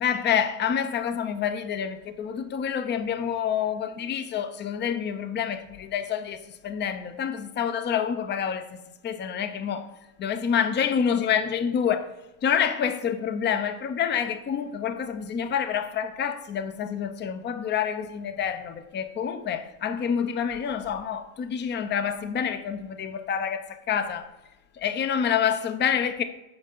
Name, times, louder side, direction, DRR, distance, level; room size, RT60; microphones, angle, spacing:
voice 1, 0.0-8.8 9.0-9.9 10.2-12.1 12.4-24.3 24.7-26.2, left 8 dB, 25° left, 0.6 m, -27 dB
7.8 x 5.4 x 5.4 m
supercardioid pair, 125°, 45 cm